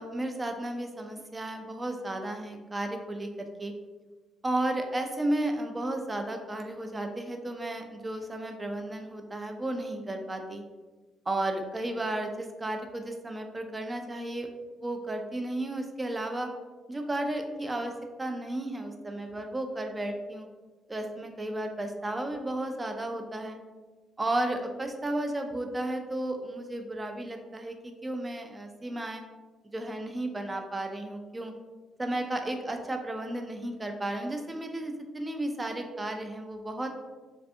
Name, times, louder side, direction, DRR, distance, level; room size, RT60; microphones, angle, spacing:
voice 1, 0.0-3.7 4.4-10.6 11.3-14.5 14.8-16.5 16.9-17.9 18.2-20.5 20.9-23.6 24.2-29.2 29.7-31.5 32.0-37.0, right 1 dB, 20° right, 5 dB, 0.3 m, -33 dB
2.4 x 2.4 x 2.5 m, 1.3 s
cardioid pair, 90°, 0 cm